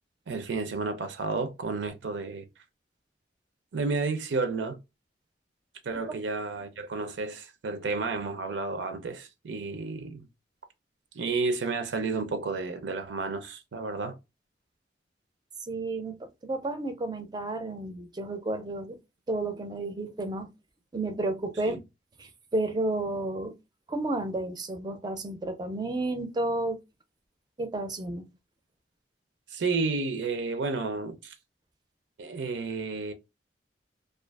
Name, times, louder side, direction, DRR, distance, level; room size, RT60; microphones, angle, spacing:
voice 1, 0.3-2.5 3.7-4.8 5.8-10.3 11.1-14.2 21.7-21.8 29.5-31.3 32.2-33.1, right 3 dB, 75° right, 0.5 m, -31 dB
voice 2, 15.7-16.2 16.4-19.0 19.3-20.5 20.9-21.8 22.2-23.5 23.9-26.8 27.6-28.2, right 2 dB, 25° right, 0.4 m, -31 dB
2.4 x 2.3 x 2.2 m
head